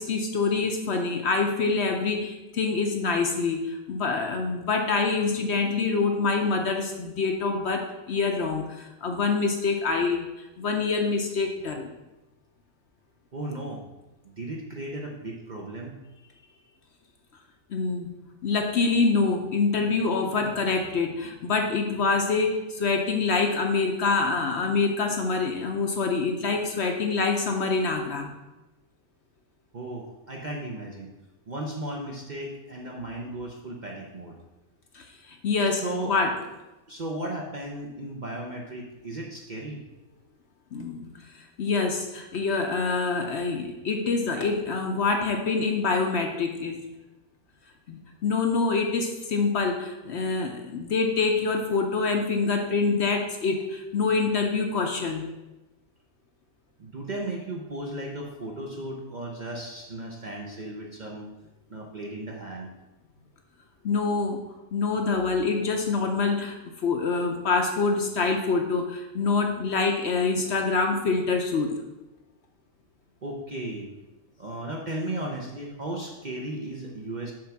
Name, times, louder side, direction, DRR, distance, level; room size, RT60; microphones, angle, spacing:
voice 1, 0.0-10.3 10.6-11.9 17.7-18.1 18.4-28.3 34.9-36.3 40.7-41.0 41.6-46.8 47.9-55.2 63.8-64.4 64.7-71.8, left 4 dB, 60° left, 3 dB, 0.8 m, -26 dB
voice 2, 13.3-13.8 14.2-16.0 29.7-31.1 31.5-34.4 35.8-36.2 36.9-39.8 56.8-61.3 61.7-62.7 73.2-73.9 74.4-77.3, right 1 dB, 45° right, 0 dB, 0.7 m, -35 dB
7.6 x 3.5 x 5.8 m, 1.1 s
omnidirectional pair, 1.5 m